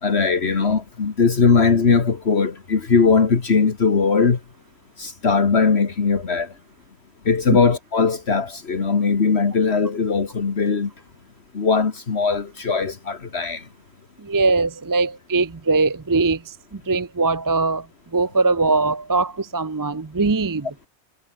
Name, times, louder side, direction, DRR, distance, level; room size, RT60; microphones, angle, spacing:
voice 1, 0.0-4.4 5.0-6.5 7.3-10.9 11.5-13.6, left 5 dB, 65° left, 1.9 m, -19 dB
voice 2, 14.2-17.9 18.1-20.7, right 3 dB, 25° right, 0.5 m, -21 dB
omnidirectional pair, 1.2 m